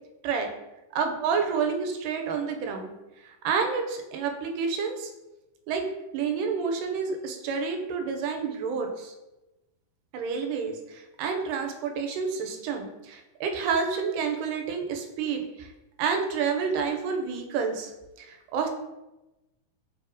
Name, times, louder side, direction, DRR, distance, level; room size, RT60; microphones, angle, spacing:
voice 1, 1.0-2.9 3.2-5.1 5.7-5.8 6.1-9.1 10.1-15.7 16.0-17.9 18.2-18.7, right 5 dB, 85° right, 3 dB, 2.1 m, -29 dB
4.6 x 2.9 x 2.5 m, 1.0 s
omnidirectional pair, 3.7 m